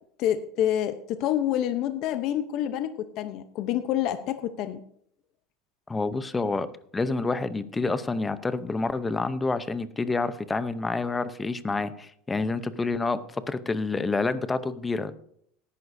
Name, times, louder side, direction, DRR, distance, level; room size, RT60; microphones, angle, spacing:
voice 1, 0.2-4.8, left 11 dB, 50° left, 9 dB, 0.8 m, -27 dB
voice 2, 5.9-6.7 6.9-15.2, left 3 dB, 10° left, 13 dB, 0.7 m, -28 dB
17.5 x 11.0 x 2.7 m, 0.68 s
supercardioid pair, 145°, 0 cm